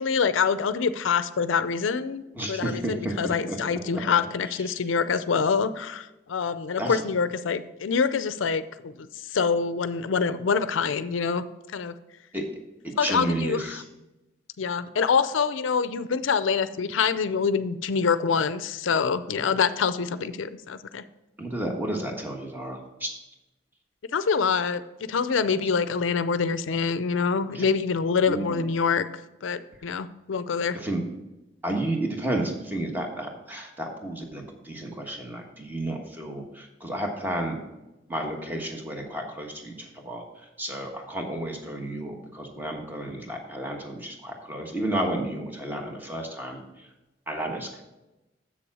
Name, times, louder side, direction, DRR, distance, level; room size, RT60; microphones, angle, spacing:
voice 1, 0.0-2.2 2.5-11.4 11.7-11.9 13.0-13.6 14.6-21.0 24.1-24.8 25.1-29.0 29.4-30.8, left 5 dB, 90° left, 13 dB, 0.5 m, -25 dB
voice 2, 2.3-4.0 4.5-4.8 6.8-7.0 12.3-12.4 13.0-13.8 21.4-23.1 27.5-27.6 28.3-28.7 30.7-31.0 31.6-37.6 38.1-46.9 47.3-47.8, right 1 dB, 10° right, 1 dB, 1.2 m, -32 dB
7.5 x 6.9 x 4.8 m, 1.0 s
head